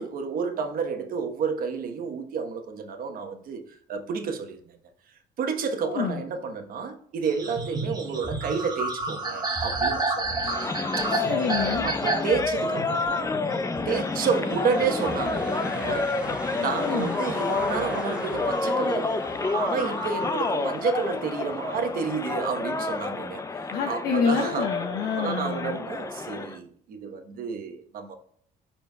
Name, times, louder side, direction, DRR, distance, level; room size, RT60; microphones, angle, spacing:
voice 1, 0.0-4.8 5.4-10.4 11.0-11.1 11.8-13.3 13.8-16.1 16.5-19.2 19.5-24.7 25.2-28.2, right 5 dB, 60° right, 1.2 m, -30 dB
voice 2, 5.8-6.2 11.1-11.9 16.8-17.2 23.7-25.8, left 6 dB, 70° left, 1.0 m, -27 dB
sound 1, 7.2-17.1 17.6-18.6 19.1-20.5, right 3 dB, 25° right, 1.5 m, -32 dB
sound 2, 10.3-26.6, left 3 dB, 20° left, 0.5 m, -29 dB
sound 3, 13.6-23.4, right 1 dB, 5° right, 1.1 m, -43 dB
12.0 x 4.4 x 2.3 m
cardioid pair, 110°, 17 cm